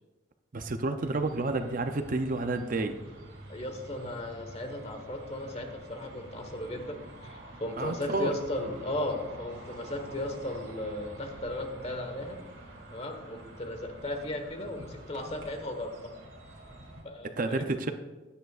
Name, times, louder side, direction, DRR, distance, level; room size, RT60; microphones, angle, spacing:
voice 1, 0.5-3.0 7.8-8.3 17.4-17.9, right 2 dB, 45° right, 7 dB, 0.6 m, -30 dB
sound 1, 1.0-17.0, right 1 dB, 60° right, 3.2 m, -48 dB
voice 2, 3.5-7.0 7.2-12.4 12.9-16.1 17.0-17.6, left 1 dB, 30° left, 4 dB, 1.3 m, -36 dB
15.5 x 10.5 x 2.4 m, 1.2 s
head